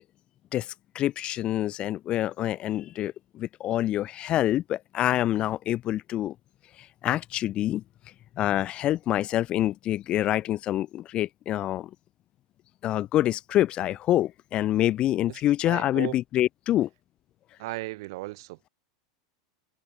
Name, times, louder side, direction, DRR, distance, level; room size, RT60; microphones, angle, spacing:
voice 1, 0.5-6.3 7.0-7.8 8.4-11.9 12.8-16.9, left 13 dB, 40° left, 0.4 m, -26 dB
voice 2, 15.3-16.2 17.6-18.7, right 20 dB, 65° right, 2.2 m, -36 dB
hypercardioid pair, 95°, 3 cm